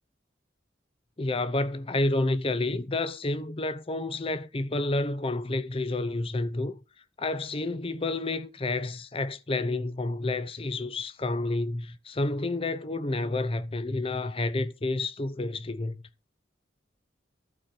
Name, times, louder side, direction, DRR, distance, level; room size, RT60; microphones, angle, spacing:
voice 1, 1.2-6.8 7.2-16.0, left 2 dB, 30° left, 0.6 m, -29 dB
12.0 x 4.4 x 6.3 m
head